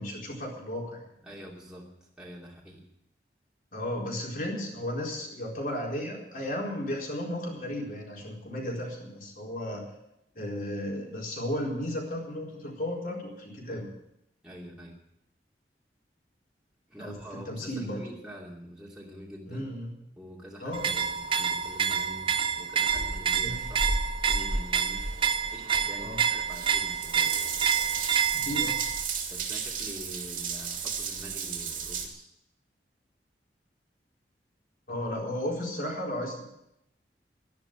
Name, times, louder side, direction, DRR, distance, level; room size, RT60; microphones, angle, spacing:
voice 1, 0.0-1.1 3.7-9.8 10.3-13.9 17.0-17.1 17.5-18.0 19.5-19.9 20.6-21.0 23.4-23.6 26.0-26.2 28.3-28.8 34.9-36.4, left 1 dB, 50° left, -1 dB, 4.3 m, -34 dB
voice 2, 1.2-2.8 13.7-13.9 14.4-15.0 16.9-19.6 20.2-25.0 25.5-27.3 28.5-28.6 29.3-32.3, equal, 5° right, -5 dB, 2.7 m, -45 dB
sound 1, 20.7-29.0, right 7 dB, 30° right, 0.6 m, -28 dB
Water tap faucet / Bathtub (filling or washing) / Drip, 22.9-32.1, right 4 dB, 50° right, 2.7 m, -34 dB
12.0 x 11.5 x 8.7 m, 0.82 s
head